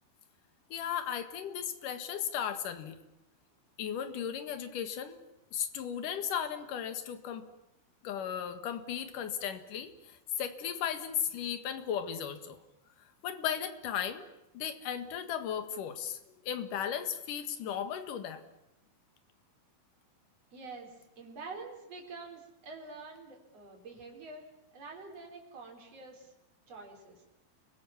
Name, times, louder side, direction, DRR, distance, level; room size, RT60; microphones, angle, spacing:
voice 1, 0.7-3.0 3.8-5.2 5.5-7.5 8.0-12.6 13.2-14.2 14.5-18.4, left 9 dB, 60° left, 9 dB, 2.9 m, -36 dB
voice 2, 20.5-24.5 24.7-26.3 26.7-27.2, right 3 dB, 40° right, 1 dB, 5.2 m, -47 dB
30.0 x 23.0 x 7.3 m, 0.90 s
omnidirectional pair, 4.6 m